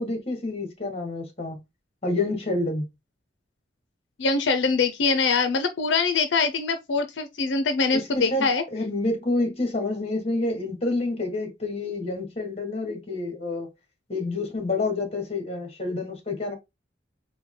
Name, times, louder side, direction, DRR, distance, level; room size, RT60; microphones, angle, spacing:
voice 1, 0.0-1.6 2.0-2.8 7.9-13.7 14.1-16.5, left 2 dB, 35° left, 1.4 m, -28 dB
voice 2, 4.2-8.6, left 4 dB, 80° left, 0.5 m, -23 dB
4.3 x 2.2 x 3.7 m
head